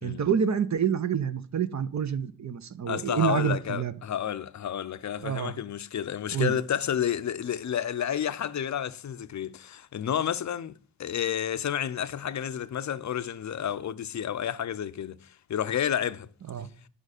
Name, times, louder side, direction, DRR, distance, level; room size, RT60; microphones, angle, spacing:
voice 1, 0.0-3.9 5.2-5.5 6.3-6.5 16.5-16.7, right 8 dB, 50° right, 0.7 m, -27 dB
voice 2, 2.9-16.3, left 9 dB, 50° left, 0.5 m, -30 dB
9.7 x 5.2 x 6.5 m
wide cardioid pair, 130°, 37 cm